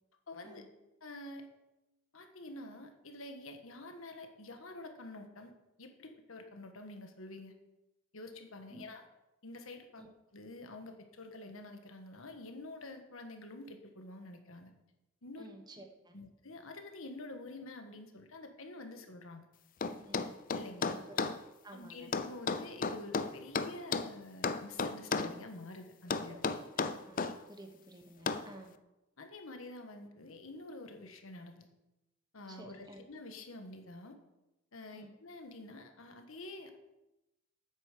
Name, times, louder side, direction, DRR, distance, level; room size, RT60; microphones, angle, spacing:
voice 1, 0.3-0.6 1.0-1.5 2.1-5.5 5.8-7.5 8.1-9.0 9.4-10.0 10.3-14.7 15.2-15.5 16.1-19.5 20.5-21.0 21.7-26.4 29.2-31.7 32.3-34.2 34.7-36.7, left 2 dB, 70° left, 5 dB, 1.5 m, -48 dB
voice 2, 15.4-16.2 19.9-20.4 20.8-21.0 21.6-22.1 26.3-26.4 26.8-28.7 32.5-33.0 34.9-35.1, right 1 dB, 20° right, 4 dB, 1.2 m, -53 dB
sound 1, 19.8-21.4 22.1-24.1 24.4-25.4 26.1-27.4 28.3-28.5, left 4 dB, 40° left, 0.5 m, -33 dB
9.2 x 8.5 x 6.7 m, 0.98 s
head